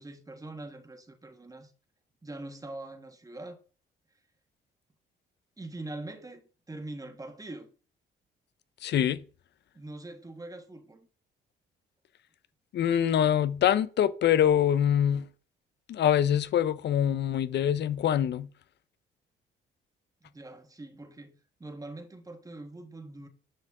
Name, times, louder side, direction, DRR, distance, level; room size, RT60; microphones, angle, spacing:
voice 1, 0.0-1.7 2.2-3.6 5.6-7.7 9.7-11.1 20.2-21.3 21.6-23.3, right 2 dB, 15° right, 1.5 m, -43 dB
voice 2, 8.8-9.2 12.7-15.3 15.9-18.5, left 10 dB, 60° left, 0.6 m, -24 dB
9.9 x 5.2 x 3.6 m
cardioid pair, 90°, 20 cm